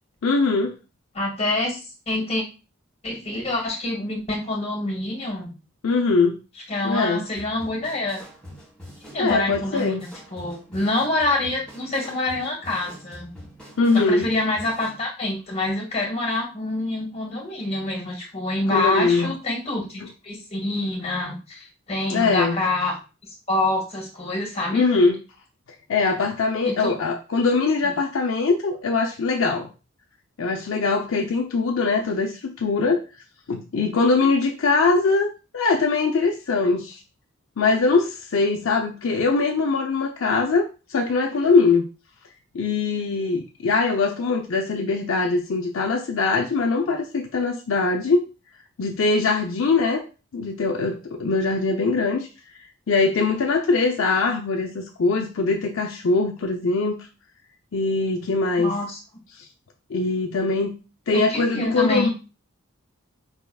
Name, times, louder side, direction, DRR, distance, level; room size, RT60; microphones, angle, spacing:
voice 1, 0.2-0.7 5.8-6.4 6.8-7.3 9.2-10.0 13.8-14.3 18.7-19.3 22.1-22.6 24.7-25.2 25.9-29.7 30.4-33.0 33.5-37.0 37.6-40.6 40.9-41.8 42.5-48.2 48.8-50.0 50.3-52.3 52.9-57.0 57.7-58.7 59.9-60.7 61.1-62.1, left 3 dB, 70° left, 2 dB, 0.5 m, -22 dB
voice 2, 1.1-2.4 3.0-5.5 6.7-8.2 9.1-13.3 13.9-22.9 23.5-24.9 26.6-26.9 27.8-27.9 58.6-59.0 61.1-62.1, left 2 dB, 30° left, 0 dB, 1.7 m, -26 dB
sound 1, 7.4-15.0, equal, 5° left, 1.6 m, -44 dB
4.9 x 3.4 x 2.3 m, 0.32 s
head